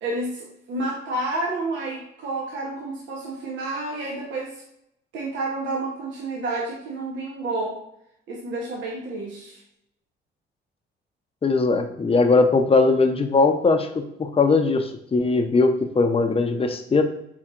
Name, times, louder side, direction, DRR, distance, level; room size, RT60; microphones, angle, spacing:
voice 1, 0.0-4.6 5.1-7.8 8.3-9.6, right 2 dB, 70° right, -3 dB, 1.0 m, -30 dB
voice 2, 11.4-13.9 14.2-17.0, left 3 dB, 30° left, 5 dB, 0.6 m, -20 dB
4.4 x 4.2 x 2.4 m, 0.79 s
cardioid pair, 90°, 20 cm